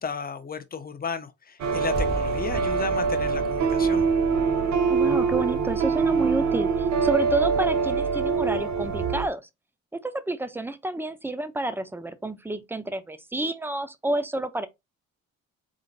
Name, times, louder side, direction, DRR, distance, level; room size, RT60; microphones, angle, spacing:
voice 1, 0.0-4.1, left 5 dB, 30° left, 0.7 m, -34 dB
sound 1, 1.6-9.3, right 5 dB, 65° right, 0.9 m, -24 dB
sound 2, 1.9-4.0, equal, 35° right, 2.9 m, -35 dB
voice 2, 4.9-9.5 9.9-14.7, right 2 dB, 5° right, 0.6 m, -29 dB
4.0 x 3.7 x 2.5 m
cardioid pair, 90°, 30 cm